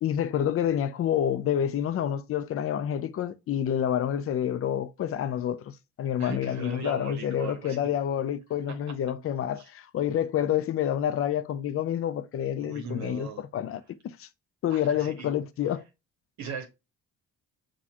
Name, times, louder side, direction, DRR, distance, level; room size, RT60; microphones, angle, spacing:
voice 1, 0.0-14.3 14.6-15.8, left 10 dB, 50° left, 0.5 m, -28 dB
voice 2, 6.2-7.8 9.6-9.7 12.6-13.4 14.7-15.3 16.4-16.7, right 4 dB, 65° right, 1.0 m, -38 dB
6.2 x 2.3 x 2.9 m
cardioid pair, 90°, 30 cm